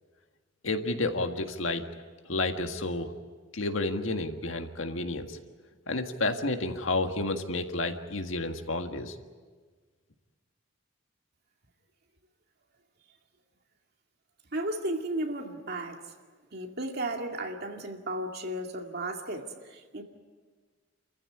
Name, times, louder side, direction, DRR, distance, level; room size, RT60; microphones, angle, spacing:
voice 1, 0.6-1.9 2.3-3.1 3.5-5.4 5.9-9.2, left 2 dB, 80° left, 6 dB, 1.8 m, -30 dB
voice 2, 14.5-16.1 16.5-20.0, right 1 dB, 55° right, 3 dB, 2.3 m, -34 dB
28.0 x 15.0 x 9.7 m, 1.5 s
head